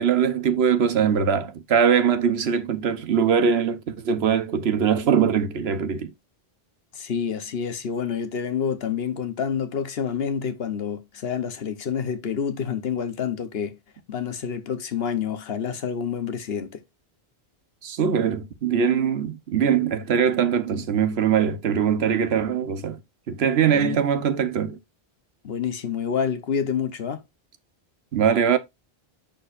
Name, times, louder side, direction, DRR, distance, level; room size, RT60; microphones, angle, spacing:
voice 1, 0.0-6.1 17.8-23.0 23.3-24.8 28.1-28.6, right 7 dB, 80° right, 1.1 m, -22 dB
voice 2, 6.9-13.8 14.1-16.8 23.7-24.0 25.4-27.2, left 7 dB, 70° left, 1.1 m, -28 dB
10.5 x 4.5 x 2.5 m
omnidirectional pair, 1.1 m